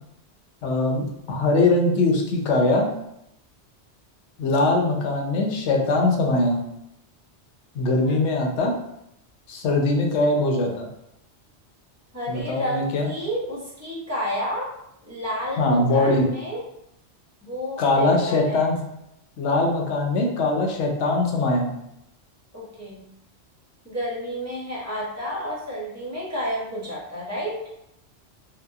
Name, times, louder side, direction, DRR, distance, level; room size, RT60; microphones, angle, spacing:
voice 1, 0.6-2.9 4.4-6.6 7.7-8.7 9.5-10.9 12.3-13.1 15.6-16.3 17.8-18.8 19.4-21.7, left 2 dB, 85° left, 0 dB, 0.9 m, -21 dB
voice 2, 12.1-14.7 15.0-16.6 17.4-18.6 22.5-23.0 23.8-27.6, equal, 20° right, -5 dB, 0.6 m, -31 dB
2.8 x 2.2 x 2.3 m, 0.80 s
omnidirectional pair, 1.2 m